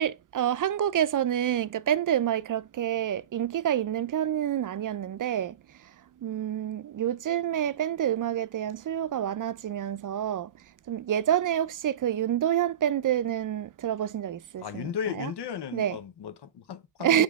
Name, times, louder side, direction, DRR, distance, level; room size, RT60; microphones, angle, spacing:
voice 1, 0.0-5.6 6.2-10.5 10.9-15.3 15.7-16.0 17.0-17.2, right 10 dB, 55° right, 0.5 m, -28 dB
voice 2, 14.6-17.2, left 8 dB, 80° left, 0.8 m, -35 dB
7.2 x 5.2 x 3.5 m
wide cardioid pair, 90°, 40 cm